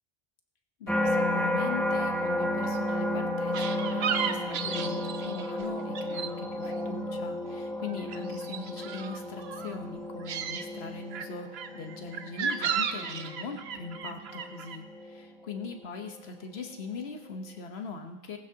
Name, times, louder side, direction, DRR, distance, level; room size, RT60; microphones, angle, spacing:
voice 1, 0.8-18.4, left 4 dB, 85° left, 5 dB, 1.3 m, -41 dB
sound 1, 0.9-16.1 16.6-17.0, left 1 dB, ahead, 0.9 m, -33 dB
sound 2, 3.5-6.3 6.6-7.5 7.7-9.8 10.1-10.6 11.1-14.8, right 7 dB, 85° right, 1.0 m, -34 dB
19.0 x 14.5 x 2.8 m, 1.2 s
omnidirectional pair, 1.0 m